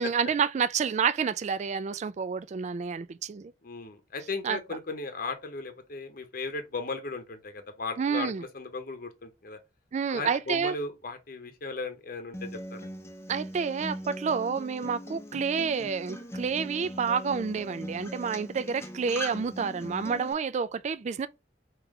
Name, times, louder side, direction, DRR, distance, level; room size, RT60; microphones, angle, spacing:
voice 1, 0.0-3.5 4.4-4.6 8.0-8.4 9.9-10.8 13.3-21.3, right 6 dB, 40° right, 0.3 m, -29 dB
voice 2, 3.6-9.6 10.1-12.9, left 3 dB, 55° left, 0.8 m, -36 dB
Acoustic guitar, 12.3-20.3, equal, 15° left, 0.7 m, -40 dB
3.6 x 2.9 x 4.8 m
head